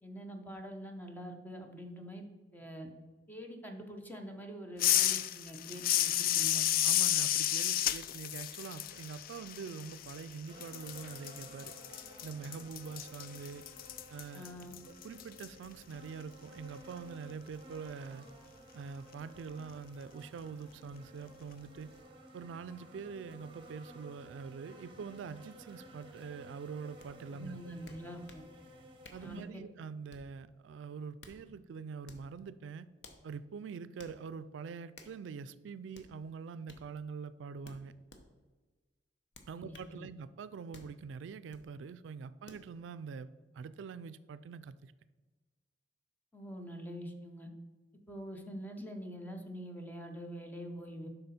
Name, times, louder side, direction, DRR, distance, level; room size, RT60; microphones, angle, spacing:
voice 1, 0.0-2.3 2.5-2.9 3.3-6.7 14.3-14.8 27.3-28.4 29.2-29.6 39.6-40.1 46.3-47.5 48.1-51.1, equal, 10° left, 4 dB, 0.8 m, -45 dB
sound 1, 4.8-10.3 10.6-15.5, left 12 dB, 50° left, 0.3 m, -32 dB
voice 2, 6.8-13.6 14.1-14.5 14.9-18.3 18.7-21.9 22.3-27.6 29.1-32.9 33.2-37.9 39.5-44.9, right 5 dB, 80° right, 15 dB, 0.3 m, -45 dB
sound 2, 10.5-29.4, right 1 dB, 30° right, 1.0 m, -55 dB
sound 3, 27.0-27.1 27.9-28.5 29.0-29.3 30.1-30.4 31.0-31.4 32.0-32.3 33.0-33.2 34.0-34.2 34.9-35.2 35.9-36.1 36.7-36.8 37.6-38.2 39.3-39.9 40.7-40.9 41.5-41.7 42.5-42.7, left 3 dB, 70° left, 0.9 m, -55 dB
7.8 x 5.6 x 4.2 m, 1.3 s
head